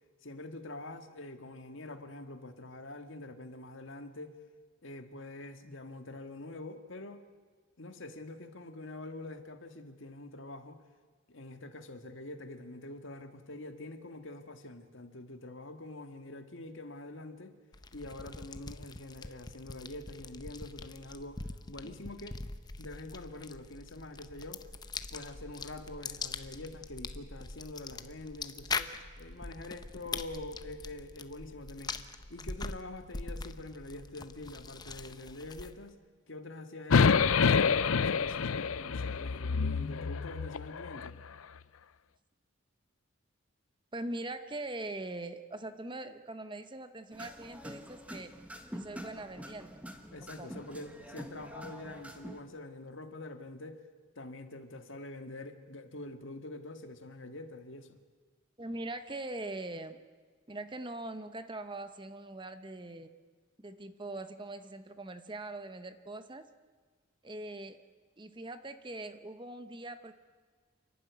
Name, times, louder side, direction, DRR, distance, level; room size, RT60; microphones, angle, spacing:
voice 1, 0.2-4.3 4.8-7.2 7.8-10.8 11.3-17.5 17.9-22.4 22.8-24.6 25.1-28.9 29.2-32.0 32.3-36.0 36.3-41.2 50.1-53.8 54.2-58.0, left 2 dB, 65° left, 7 dB, 1.7 m, -45 dB
sound 1, 17.7-35.9, left 4 dB, 20° left, 0.7 m, -43 dB
sound 2, 36.9-41.1, left 5 dB, 85° left, 0.6 m, -27 dB
voice 2, 43.9-48.3 48.7-49.8 50.4-50.5 58.6-60.0 60.5-63.1 63.6-66.4 67.2-67.8 68.2-70.1, right 2 dB, 20° right, 10 dB, 0.9 m, -42 dB
sound 3, 47.1-52.4, equal, 5° right, 1.4 m, -46 dB
28.5 x 11.5 x 9.4 m, 1.5 s
head